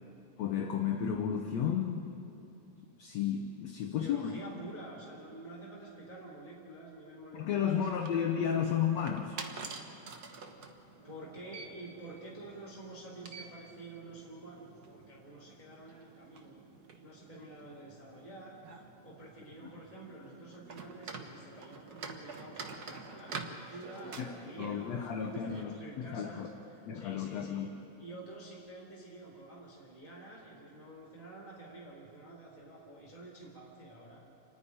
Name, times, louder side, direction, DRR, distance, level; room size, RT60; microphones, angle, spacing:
voice 1, 0.4-2.1 3.0-4.3 7.3-9.4 24.2-24.3 24.6-26.5 26.9-27.7, left 8 dB, 65° left, 4 dB, 1.9 m, -33 dB
voice 2, 3.8-8.6 11.0-16.6 17.0-18.6 19.0-27.7 28.0-34.2, right 2 dB, 10° right, -4 dB, 3.0 m, -49 dB
sound 1, 7.7-25.6, right 4 dB, 75° right, 0.8 m, -48 dB
28.0 x 10.0 x 10.0 m, 2.8 s
omnidirectional pair, 3.7 m